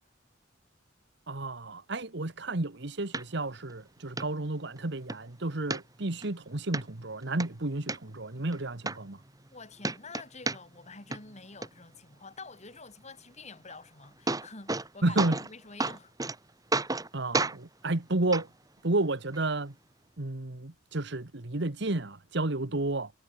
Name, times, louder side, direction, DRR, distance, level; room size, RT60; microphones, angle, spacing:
voice 1, 1.3-9.2 15.0-15.4 17.1-18.5 18.8-19.7 20.2-23.1, right 2 dB, 65° right, 1.6 m, -31 dB
sound 1, 3.1-3.2 3.7-3.8 4.2-4.3 4.7-5.2 5.7-6.3 6.7-6.8 7.2-8.0 8.5-8.6 8.8-9.5 9.8-10.9 11.1-11.7 13.7-13.8 14.0-14.9 15.2-15.5 15.8-16.4 16.7-17.1 17.3-17.6 18.3-18.4 19.3-19.4, right 3 dB, 20° right, 2.1 m, -31 dB
voice 2, 9.5-16.1, left 3 dB, 35° left, 4.5 m, -48 dB
head